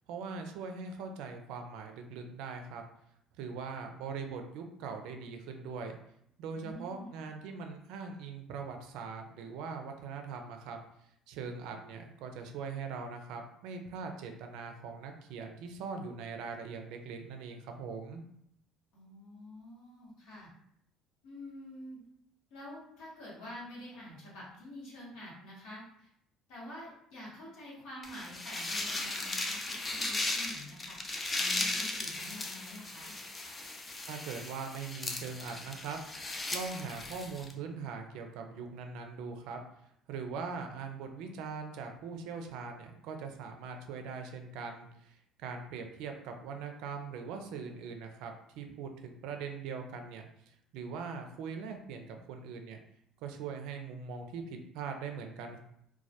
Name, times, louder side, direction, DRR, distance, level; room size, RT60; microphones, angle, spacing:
voice 1, 0.1-2.8 3.4-6.0 6.4-10.8 11.3-18.2 34.1-36.0 36.5-39.6 40.1-52.8 53.2-55.6, right 5 dB, 75° right, 4 dB, 0.4 m, -41 dB
voice 2, 6.5-7.2 18.9-20.5 21.2-22.0 22.5-26.1 26.5-33.2, left 1 dB, 80° left, -7 dB, 1.0 m, -47 dB
sound 1, 28.0-37.5, left 2 dB, 25° left, 0.4 m, -37 dB
2.2 x 2.1 x 2.7 m, 0.74 s
supercardioid pair, 90°, 0 cm